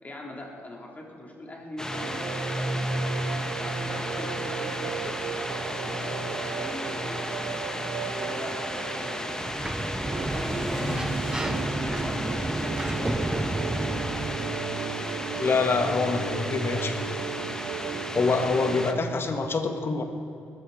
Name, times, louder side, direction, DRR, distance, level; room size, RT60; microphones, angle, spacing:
voice 1, 0.0-2.8 3.5-5.2 5.8-7.7 8.1-9.3 10.2-13.3 13.7-15.3 16.1-16.8, left 1 dB, 30° left, -1 dB, 3.6 m, -42 dB
sound 1, 1.8-18.9, left 1 dB, 10° left, 1.4 m, -33 dB
sound 2, 1.9-19.0, right 8 dB, 65° right, 0.8 m, -36 dB
Sliding door, 9.3-14.6, right 1 dB, 15° right, 0.9 m, -31 dB
voice 2, 15.4-16.9 18.1-20.0, left 4 dB, 45° left, 6 dB, 1.6 m, -25 dB
21.0 x 12.0 x 4.3 m, 2.9 s
hypercardioid pair, 50°, 6 cm